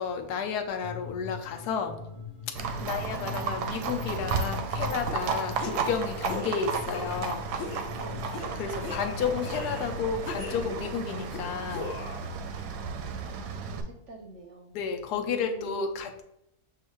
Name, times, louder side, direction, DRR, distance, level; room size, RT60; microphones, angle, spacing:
voice 1, 0.0-2.0 2.5-7.7 8.6-11.9 14.7-16.2, left 6 dB, 85° left, 6 dB, 1.1 m, -32 dB
sound 1, 0.8-10.6, left 5 dB, 30° left, 0.7 m, -42 dB
Livestock farm animals working animals, 2.6-13.8, right 5 dB, 85° right, 1.1 m, -33 dB
voice 2, 2.7-3.0 8.0-8.4 13.4-14.8 15.1-16.1, right 2 dB, 65° right, 2 dB, 0.8 m, -48 dB
sound 2, 5.1-5.2 5.6-5.9 6.3-6.5 6.9-7.3 7.6-7.9 8.3-8.5 8.8-9.9 10.2-10.9 11.3-12.3, left 4 dB, 60° left, 1.0 m, -38 dB
7.0 x 2.4 x 3.0 m, 0.83 s
omnidirectional pair, 1.7 m